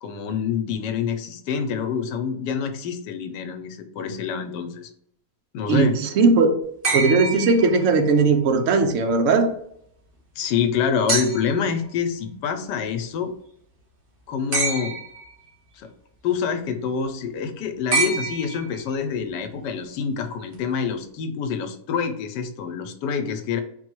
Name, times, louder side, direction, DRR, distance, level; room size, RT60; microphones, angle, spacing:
voice 1, 0.0-4.9 5.5-6.0 10.4-13.3 14.3-14.9 15.7-15.9 16.2-23.6, left 6 dB, 85° left, 7 dB, 1.2 m, -26 dB
voice 2, 5.7-6.5 6.9-9.5, right 4 dB, 65° right, 5 dB, 0.8 m, -18 dB
sound 1, 6.8-8.2 11.1-11.7 14.5-15.3 17.9-19.0 20.5-20.6, right 3 dB, 35° right, 1.0 m, -26 dB
4.0 x 2.3 x 4.5 m, 0.69 s
omnidirectional pair, 1.8 m